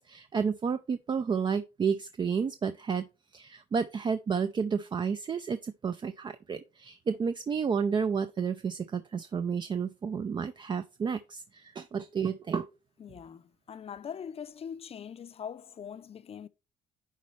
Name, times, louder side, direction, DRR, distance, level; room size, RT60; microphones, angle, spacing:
voice 1, 0.0-3.1 3.3-12.7, right 6 dB, 25° right, 0.4 m, -31 dB
voice 2, 13.0-16.5, left 7 dB, 35° left, 0.6 m, -42 dB
10.0 x 4.3 x 3.1 m
cardioid pair, 110°, 17 cm